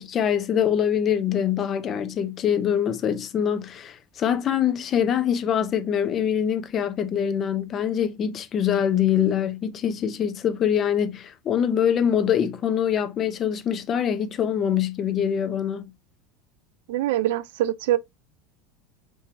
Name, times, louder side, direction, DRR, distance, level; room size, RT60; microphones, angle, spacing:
voice 1, 0.0-15.9, left 9 dB, 30° left, 0.6 m, -24 dB
voice 2, 16.9-18.0, right 13 dB, 80° right, 0.4 m, -24 dB
4.5 x 3.2 x 2.7 m
supercardioid pair, 150°, 0 cm